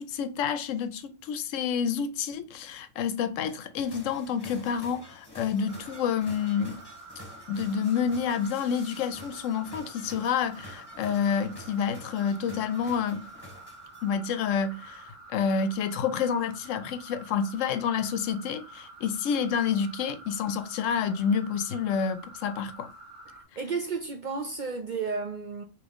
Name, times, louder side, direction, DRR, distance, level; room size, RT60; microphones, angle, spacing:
voice 1, 0.0-6.8 7.5-13.3 14.0-22.9, left 7 dB, 80° left, 0.9 m, -29 dB
sound 1, 3.8-14.3, left 1 dB, 20° left, 1.4 m, -49 dB
sound 2, 5.7-23.4, right 2 dB, 30° right, 1.0 m, -48 dB
voice 2, 23.6-25.6, right 4 dB, 55° right, 0.5 m, -32 dB
3.5 x 3.0 x 3.5 m
omnidirectional pair, 1.3 m